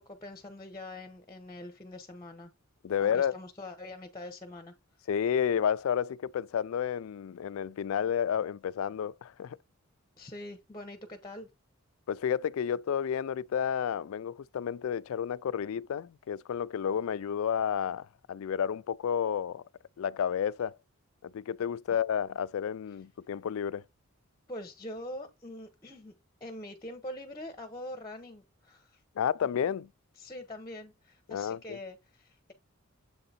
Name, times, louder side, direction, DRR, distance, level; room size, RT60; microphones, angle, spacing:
voice 1, 0.0-2.5 3.0-4.7 10.2-11.5 21.9-22.0 24.5-26.1 26.4-29.0 30.2-32.5, left 1 dB, 20° left, 0.8 m, -44 dB
voice 2, 2.8-3.3 5.1-9.6 12.1-19.6 20.0-20.8 21.2-23.8 29.2-29.9 31.3-31.8, left 8 dB, 65° left, 0.3 m, -31 dB
7.6 x 3.8 x 4.1 m
head